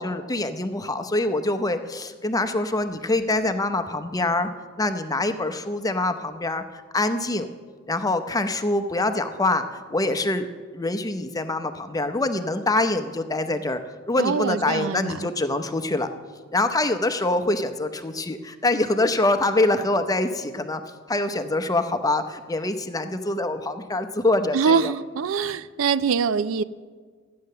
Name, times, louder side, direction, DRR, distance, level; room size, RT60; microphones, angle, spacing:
voice 1, 0.0-4.5 4.8-7.5 7.9-10.5 10.7-13.8 14.1-16.1 16.5-20.8 21.1-24.9, left 2 dB, 20° left, 0.7 m, -25 dB
voice 2, 14.2-15.3 24.5-26.6, right 6 dB, 85° right, 0.4 m, -23 dB
13.5 x 9.4 x 6.6 m
head